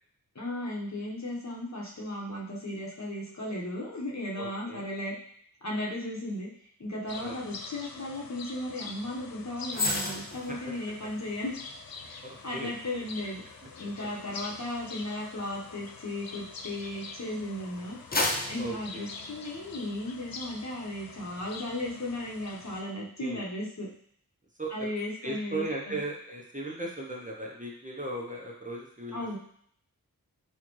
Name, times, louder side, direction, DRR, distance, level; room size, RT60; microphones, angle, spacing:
voice 1, 0.3-5.1 5.6-6.5 6.8-11.5 12.0-12.2 12.4-13.4 13.8-18.0 18.2-23.9 24.7-26.0 29.1-29.4, left 1 dB, 50° left, -4 dB, 1.0 m, -35 dB
voice 2, 4.4-4.8 7.2-7.4 10.5-10.7 12.2-12.7 18.6-19.1 23.2-23.4 24.6-24.9 25.2-29.2, right 2 dB, 20° right, -2 dB, 0.7 m, -37 dB
sound 1, 7.1-22.8, left 4 dB, 75° left, 0.5 m, -45 dB
sound 2, 9.7-17.1 17.6-19.9 20.3-20.5, left 1 dB, 25° left, 0.6 m, -36 dB
4.3 x 2.4 x 3.0 m, 0.63 s
wide cardioid pair, 45°, 36 cm